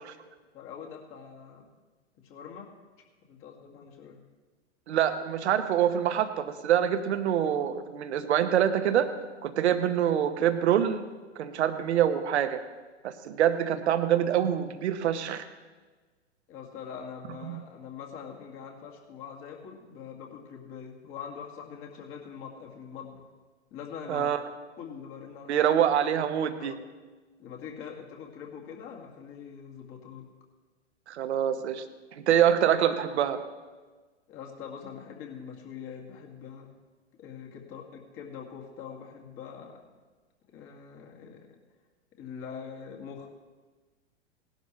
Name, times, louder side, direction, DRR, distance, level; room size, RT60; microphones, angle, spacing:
voice 1, 0.5-1.7 2.2-2.7 3.2-4.2 16.5-23.3 23.7-24.3 24.8-25.7 26.6-26.8 27.4-30.3 34.3-36.7 37.2-39.8 40.5-41.5 42.2-43.3, left 7 dB, 35° left, 1 dB, 2.2 m, -43 dB
voice 2, 4.9-9.1 9.4-11.1 11.4-12.6 13.0-15.4 17.4-17.6 24.1-24.4 25.5-26.8 31.1-31.8 32.2-33.4, right 10 dB, 65° right, 9 dB, 1.1 m, -25 dB
18.0 x 11.5 x 3.2 m, 1.3 s
figure-of-eight pair, 105°, 36 cm